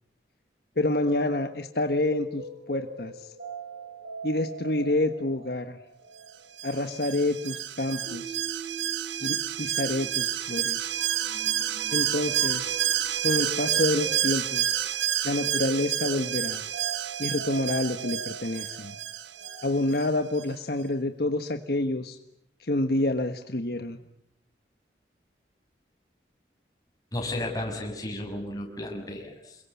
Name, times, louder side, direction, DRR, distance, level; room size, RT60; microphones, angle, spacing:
voice 1, 0.8-2.4 2.7-3.3 4.2-5.8 6.6-8.4 9.2-10.8 11.9-12.8 13.2-14.8 15.2-16.6 17.2-19.0 19.6-22.2 22.6-24.0, left 1 dB, 60° left, 7 dB, 1.4 m, -28 dB
sound 1, 1.0-19.6, right 2 dB, 60° right, 6.8 m, -42 dB
Alarm, 6.6-20.1 20.4-20.5, right 12 dB, 85° right, 1.4 m, -29 dB
voice 2, 27.1-29.6, left 1 dB, 20° left, 2 dB, 6.5 m, -33 dB
28.5 x 23.0 x 8.4 m, 0.73 s
head